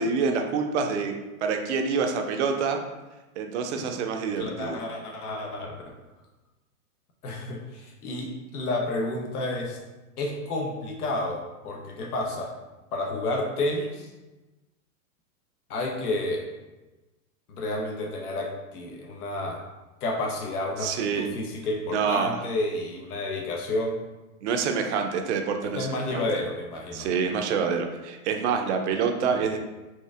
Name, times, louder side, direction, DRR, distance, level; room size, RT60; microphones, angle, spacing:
voice 1, 0.0-2.8 3.4-4.8 20.8-21.3 21.9-22.3 24.4-26.2 26.9-29.6, right 5 dB, 50° right, 4 dB, 0.5 m, -27 dB
voice 2, 4.4-5.8 7.2-9.8 10.2-12.5 12.9-14.1 15.7-16.4 17.5-19.6 20.0-24.0 25.8-27.1, left 2 dB, 85° left, 1 dB, 0.9 m, -30 dB
4.4 x 2.6 x 2.4 m, 1.1 s
hypercardioid pair, 140°, 44 cm